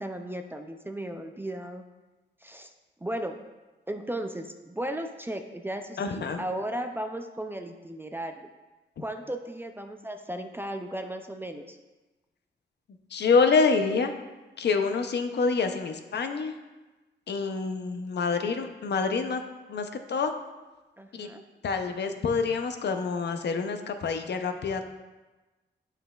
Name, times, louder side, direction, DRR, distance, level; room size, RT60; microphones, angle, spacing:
voice 1, 0.0-1.8 2.4-2.7 3.0-3.4 3.9-8.3 9.0-11.8 21.0-21.4, right 1 dB, 10° right, 5 dB, 0.3 m, -35 dB
voice 2, 6.0-6.4 13.1-14.1 14.6-16.5 17.3-19.4 19.7-20.3 21.1-21.3 21.6-24.8, left 4 dB, 65° left, 7 dB, 0.6 m, -27 dB
9.8 x 5.7 x 2.3 m, 1.2 s
wide cardioid pair, 150°, 19 cm